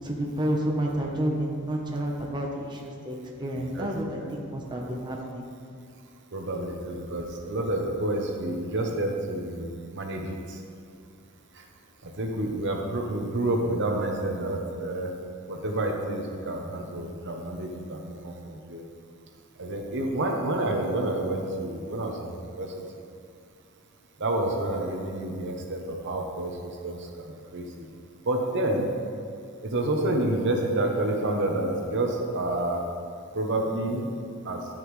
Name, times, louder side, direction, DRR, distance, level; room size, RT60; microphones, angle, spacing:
voice 1, 0.0-5.4, right 1 dB, 20° right, -1 dB, 0.9 m, -30 dB
voice 2, 6.3-10.6 11.5-11.6 12.0-15.1 15.5-18.8 19.6-22.7 24.2-27.9 28.2-28.9 29.6-32.8 33.3-34.1 34.4-34.6, right 1 dB, 55° right, 2 dB, 0.9 m, -29 dB
11.5 x 8.6 x 3.2 m, 2.3 s
head